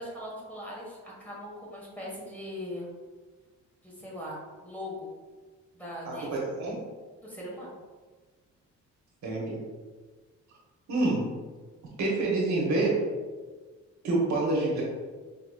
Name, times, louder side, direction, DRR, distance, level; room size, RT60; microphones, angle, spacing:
voice 1, 0.0-2.9 3.8-5.1 5.8-6.3 7.2-7.7, left 1 dB, 5° left, -5 dB, 1.4 m, -40 dB
voice 2, 6.0-6.8 9.2-9.6 10.9-11.4 12.0-13.0 14.0-14.8, right 2 dB, 70° right, -3 dB, 1.1 m, -27 dB
5.1 x 2.9 x 2.4 m, 1.4 s
cardioid pair, 90°, 30 cm